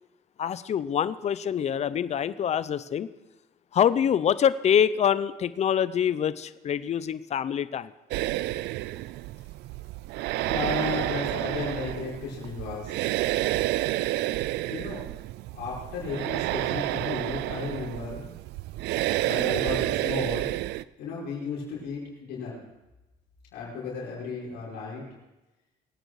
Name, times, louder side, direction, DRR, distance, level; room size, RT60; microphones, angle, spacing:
voice 1, 0.4-3.1 3.7-7.9, left 8 dB, 40° left, 15 dB, 0.6 m, -25 dB
sound 1, 8.1-20.8, right 16 dB, 80° right, 0.4 m, -30 dB
voice 2, 10.5-12.9 14.7-15.0 15.5-18.2 19.2-20.6 21.0-22.6 23.5-25.0, left 4 dB, 90° left, -5 dB, 6.0 m, -34 dB
24.0 x 9.2 x 4.8 m, 1.0 s
cardioid pair, 110°, 17 cm